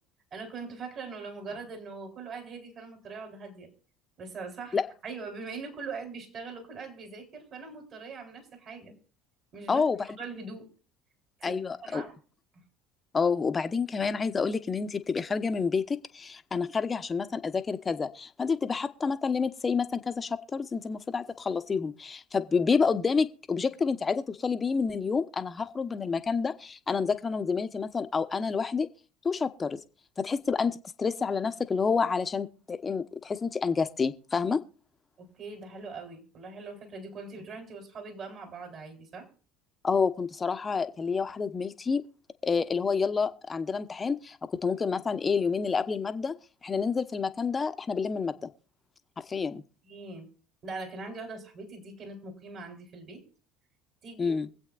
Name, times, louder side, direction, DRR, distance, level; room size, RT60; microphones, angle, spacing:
voice 1, 0.3-3.7 4.2-4.8 5.0-9.0 9.5-9.8 10.2-10.7 11.4-12.2 12.5-12.6 35.2-39.3 49.8-50.3 50.6-53.2 54.0-54.3, right 4 dB, 50° right, 3.7 m, -41 dB
voice 2, 11.4-12.0 13.1-28.9 29.2-29.8 30.2-34.6 39.8-42.0 42.4-46.3 46.6-48.3 49.3-49.6 54.2-54.5, left 5 dB, 30° left, 0.9 m, -28 dB
24.0 x 8.1 x 2.5 m
hypercardioid pair, 70°, 0 cm